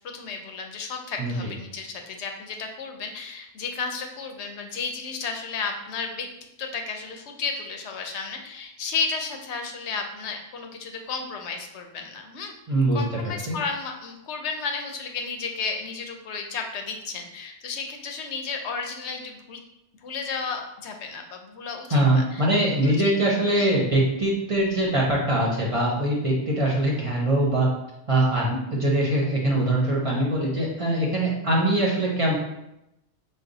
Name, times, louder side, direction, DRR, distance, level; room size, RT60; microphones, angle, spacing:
voice 1, 0.1-6.3 6.6-12.5 12.9-19.6 20.0-22.5 22.8-23.1 23.5-23.7, left 5 dB, 80° left, 4 dB, 0.9 m, -33 dB
voice 2, 12.7-13.0 13.5-13.6 21.9-27.7 28.1-32.4, right 1 dB, 35° right, -3 dB, 0.8 m, -22 dB
5.2 x 2.0 x 3.9 m, 0.86 s
omnidirectional pair, 1.1 m